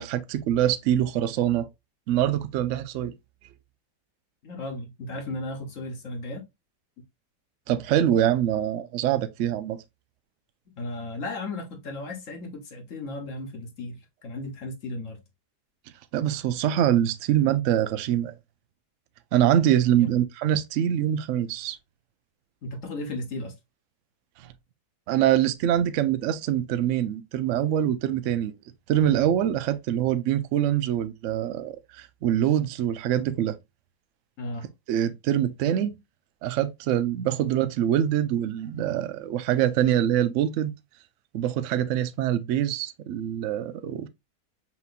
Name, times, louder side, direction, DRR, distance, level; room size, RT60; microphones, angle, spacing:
voice 1, 0.0-1.7 2.1-3.1 7.7-9.8 16.1-18.3 19.3-21.8 24.4-24.5 25.1-28.5 28.9-33.6 34.9-36.0 36.4-40.7 41.3-44.1, right 11 dB, 85° right, 0.6 m, -24 dB
voice 2, 4.4-6.4 10.8-14.0 14.2-15.2 20.0-20.1 22.6-23.5 34.4-34.7, left 2 dB, 55° left, 1.1 m, -35 dB
5.8 x 2.8 x 2.4 m
omnidirectional pair, 1.8 m